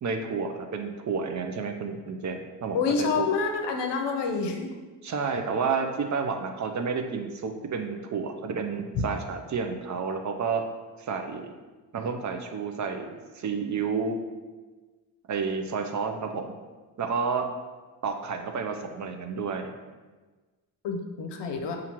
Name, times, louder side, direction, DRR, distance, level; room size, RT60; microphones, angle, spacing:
voice 1, 0.0-3.3 5.0-10.6 11.0-11.5 11.9-14.2 15.3-16.5 17.0-17.5 18.0-19.7, right 5 dB, 45° right, 5 dB, 0.5 m, -30 dB
voice 2, 2.7-4.7 20.8-21.8, left 5 dB, 75° left, 4 dB, 0.7 m, -28 dB
5.6 x 2.5 x 2.9 m, 1.3 s
cardioid pair, 85°, 42 cm